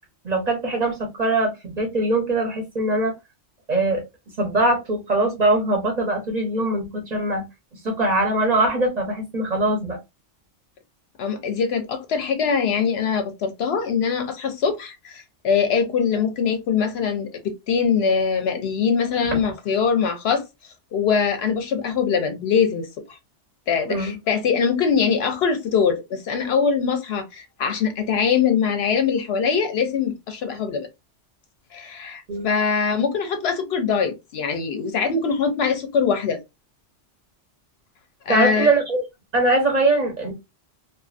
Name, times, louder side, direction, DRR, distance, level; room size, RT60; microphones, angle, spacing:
voice 1, 0.2-3.1 3.7-4.0 4.4-7.4 7.8-10.0 19.3-19.4 23.9-24.1 32.3-32.5 38.3-39.0 39.3-40.3, right 2 dB, 40° right, 0.9 m, -22 dB
voice 2, 11.2-20.4 20.9-23.2 23.7-30.9 31.7-36.4 38.3-38.7, left 6 dB, 70° left, 0.8 m, -22 dB
2.5 x 2.4 x 2.4 m
omnidirectional pair, 1.2 m